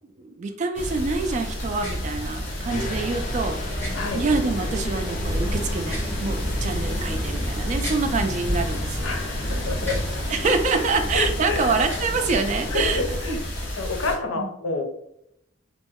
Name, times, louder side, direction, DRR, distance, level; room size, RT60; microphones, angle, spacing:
voice 1, 0.2-3.6 3.9-9.0 10.3-13.0 13.3-13.4 14.3-14.5, right 4 dB, 35° right, 7 dB, 0.3 m, -26 dB
sound 1, 0.7-14.1, equal, 55° left, 1.1 m, -29 dB
sound 2, 1.8-2.0 3.8-3.9 5.8-6.1 7.8-8.0 9.8-10.1 11.8-12.1, equal, 15° left, 1.3 m, -35 dB
sound 3, 2.7-13.2, left 1 dB, 40° left, 0.5 m, -35 dB
voice 2, 9.0-10.0 10.7-10.9 11.1-11.8 12.7-13.4 13.8-14.8, left 3 dB, 85° left, 3 dB, 0.6 m, -28 dB
3.0 x 2.0 x 3.5 m, 0.79 s
head